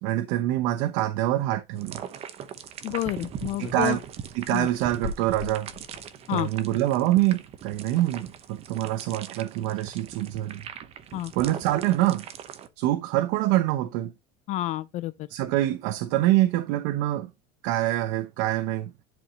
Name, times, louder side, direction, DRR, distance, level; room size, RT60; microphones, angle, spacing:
voice 1, 0.0-2.0 3.6-4.0 4.3-5.7 6.3-10.6 11.4-12.2 12.8-14.1 15.3-17.3 17.6-18.9, right 15 dB, 65° right, 0.9 m, -25 dB
sound 1, 1.8-12.7, right 8 dB, 35° right, 0.8 m, -41 dB
voice 2, 2.8-4.0 4.5-4.7 6.3-6.5 11.1-11.3 14.5-15.3, left 15 dB, 40° left, 0.4 m, -29 dB
sound 2, 3.6-6.1 7.3-7.4 7.6-7.7 7.8-8.2 8.7-8.9, left 5 dB, 85° left, 2.1 m, -41 dB
11.0 x 5.1 x 2.8 m
cardioid pair, 160°, 19 cm